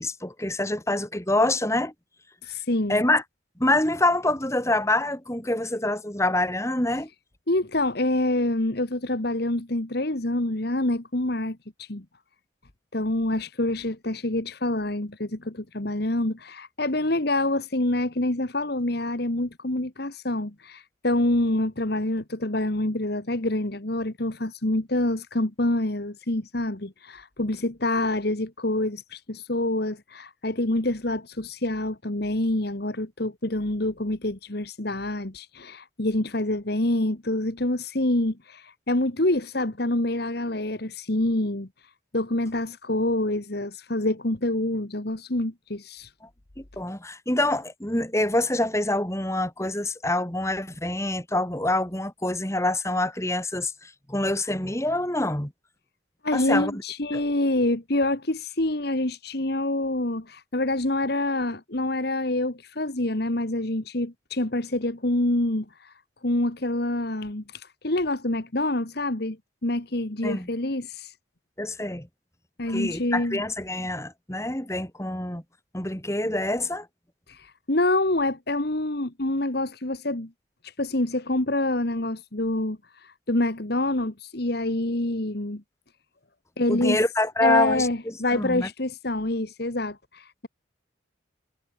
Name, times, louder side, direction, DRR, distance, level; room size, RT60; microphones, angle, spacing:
voice 1, 0.0-1.9 2.9-3.2 3.6-7.1 46.8-55.5 56.3-56.7 57.1-57.2 70.2-70.5 71.6-72.1 72.7-75.4 75.7-76.9 86.7-88.7, left 1 dB, 15° left, 3.4 m, -26 dB
voice 2, 2.4-3.0 7.5-12.1 12.9-41.7 42.1-46.1 56.2-65.9 66.2-69.4 69.6-71.1 72.6-73.4 77.3-80.3 80.6-85.6 86.6-87.0 87.4-90.5, left 1 dB, 55° left, 1.8 m, -26 dB
head